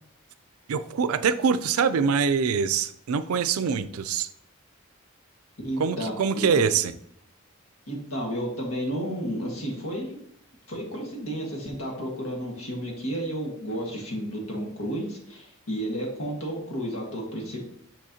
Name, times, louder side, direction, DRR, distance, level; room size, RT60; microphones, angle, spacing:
voice 1, 0.7-4.3 5.8-6.9, right 6 dB, 90° right, 14 dB, 0.4 m, -24 dB
voice 2, 5.6-6.6 7.9-10.2 10.7-17.6, equal, 85° left, -1 dB, 1.7 m, -32 dB
6.3 x 6.2 x 2.8 m, 0.67 s
head